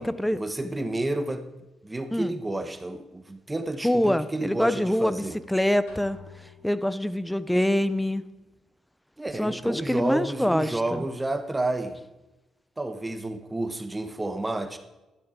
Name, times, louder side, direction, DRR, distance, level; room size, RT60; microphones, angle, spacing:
voice 1, 0.0-1.5 1.8-5.4 9.2-12.0 12.8-14.8, right 2 dB, 20° right, 8 dB, 1.1 m, -30 dB
voice 2, 3.8-5.2 5.5-6.2 6.6-8.2 9.4-11.1, left 1 dB, 5° left, 15 dB, 0.7 m, -25 dB
sound 1, 5.9-7.3, left 5 dB, 90° left, 2.9 m, -50 dB
13.5 x 11.5 x 3.8 m, 1.0 s
supercardioid pair, 60°, 0 cm